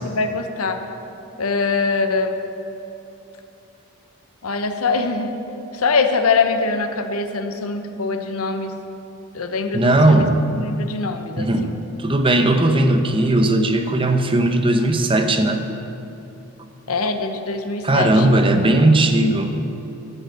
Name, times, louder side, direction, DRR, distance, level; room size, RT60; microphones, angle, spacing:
voice 1, 0.0-0.8 1.4-2.4 4.4-5.3 5.7-8.7 9.3-10.3 10.5-11.7 16.9-18.3, left 4 dB, 80° left, 7 dB, 1.0 m, -23 dB
voice 2, 9.7-10.3 11.4-11.7 12.0-15.7 17.8-19.5, right 1 dB, 25° right, 6 dB, 0.9 m, -17 dB
12.5 x 8.0 x 9.0 m, 2.9 s
head